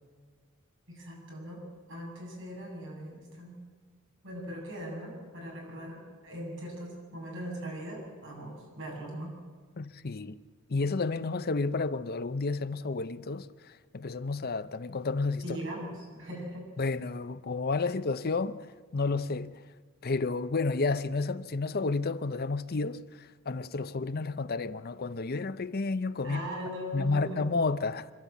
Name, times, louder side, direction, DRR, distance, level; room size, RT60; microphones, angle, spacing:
voice 1, 0.9-1.6 1.9-3.6 4.2-9.3 15.4-16.7 26.2-27.4, equal, 60° right, 7.9 m, -40 dB
voice 2, 9.8-10.4 10.7-15.6 16.8-18.6 18.9-19.6 20.0-26.4 26.9-28.1, left 3 dB, 45° left, 0.6 m, -31 dB
26.5 x 12.0 x 8.4 m
head